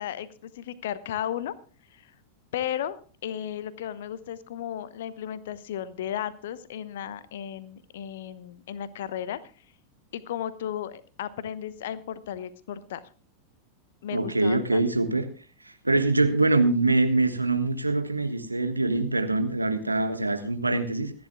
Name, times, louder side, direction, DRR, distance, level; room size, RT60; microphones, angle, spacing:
voice 1, 0.0-1.5 1.9-2.1 2.5-9.4 10.1-13.0 14.0-14.8, left 10 dB, 55° left, 16 dB, 0.9 m, -34 dB
voice 2, 14.1-15.3 15.6-21.1, right 2 dB, 85° right, 8 dB, 1.4 m, -24 dB
26.0 x 10.5 x 2.3 m, 0.37 s
figure-of-eight pair, 90°, 0 cm